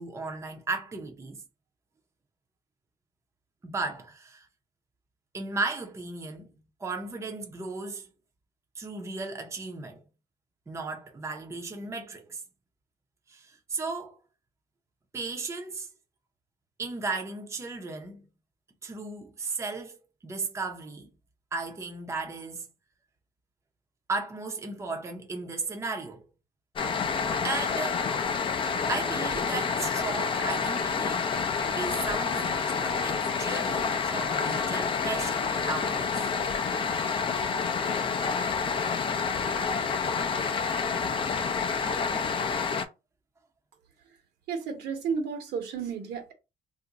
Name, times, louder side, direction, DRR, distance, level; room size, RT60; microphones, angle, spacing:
voice 1, 0.0-1.4 3.6-4.5 5.3-8.1 8.8-10.0 10.7-12.4 13.3-14.2 15.1-15.9 16.8-18.3 18.8-21.1 21.5-22.7 24.1-26.3 27.0-28.1 28.9-31.3 31.7-36.3 41.4-41.5, right 3 dB, 15° right, 0.6 m, -35 dB
sound 1, 26.8-42.9, left 5 dB, 30° left, 0.4 m, -28 dB
voice 2, 44.5-46.3, right 6 dB, 75° right, 1.0 m, -32 dB
2.5 x 2.1 x 3.8 m
cardioid pair, 110°, 17 cm